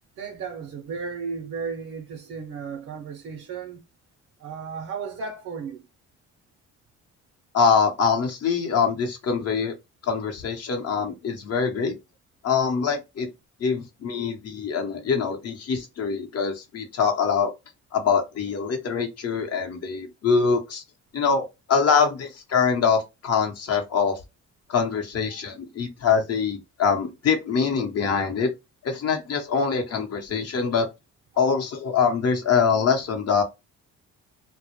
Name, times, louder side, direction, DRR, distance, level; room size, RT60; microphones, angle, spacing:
voice 1, 0.2-3.8 4.4-5.9 13.8-13.9 25.3-25.4, right 5 dB, 50° right, 0.5 m, -34 dB
voice 2, 7.5-9.7 10.0-11.9 12.4-13.3 13.6-17.5 17.9-20.8 21.1-24.2 24.7-28.5 28.8-30.9 31.4-33.4, left 5 dB, 55° left, 0.8 m, -24 dB
2.1 x 2.0 x 2.9 m
cardioid pair, 90°, 30 cm